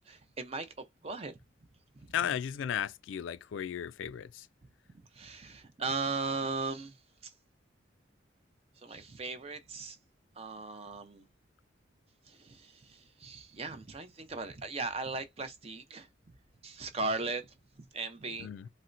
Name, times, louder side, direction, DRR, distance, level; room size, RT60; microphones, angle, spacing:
voice 1, 0.1-0.7 1.0-1.3 5.2-6.9 8.8-10.0 10.4-11.2 12.4-16.1 16.6-17.5 17.9-18.5, right 3 dB, 30° right, 0.5 m, -37 dB
voice 2, 2.1-4.5 18.4-18.7, left 9 dB, 85° left, 0.3 m, -35 dB
4.2 x 2.1 x 2.5 m
head